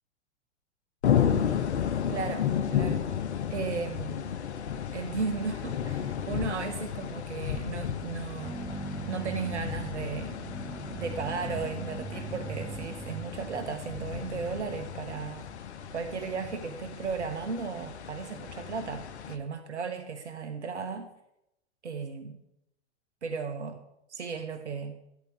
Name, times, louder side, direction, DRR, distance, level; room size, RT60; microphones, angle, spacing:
sound 1, 1.0-19.4, left 9 dB, 75° left, 1.1 m, -33 dB
voice 1, 2.1-3.1 3.5-4.3 4.9-8.7 9.1-10.4 10.9-15.5 15.9-21.1 21.8-22.4 23.2-23.8 24.1-25.0, right 5 dB, 85° right, 8 dB, 1.2 m, -35 dB
sound 2, 8.4-16.1, right 4 dB, 5° right, 1.1 m, -42 dB
13.0 x 12.0 x 3.5 m, 0.83 s
hypercardioid pair, 100°, 34 cm